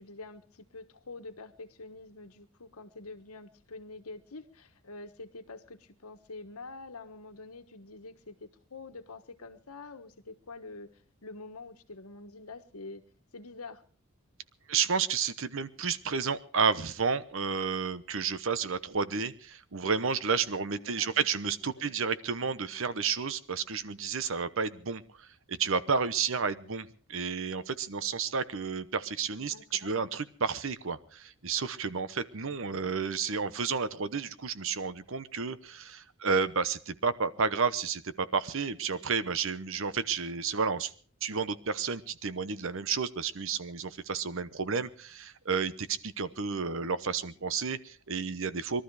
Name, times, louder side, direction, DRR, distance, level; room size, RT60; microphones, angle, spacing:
voice 1, 0.0-13.0 13.3-13.8 20.5-21.3 21.6-22.1 29.5-29.9, left 3 dB, 85° left, 8 dB, 1.4 m, -46 dB
voice 2, 14.7-40.9 41.2-48.8, right 5 dB, 60° right, 14 dB, 0.9 m, -31 dB
21.5 x 13.0 x 4.8 m, 0.42 s
head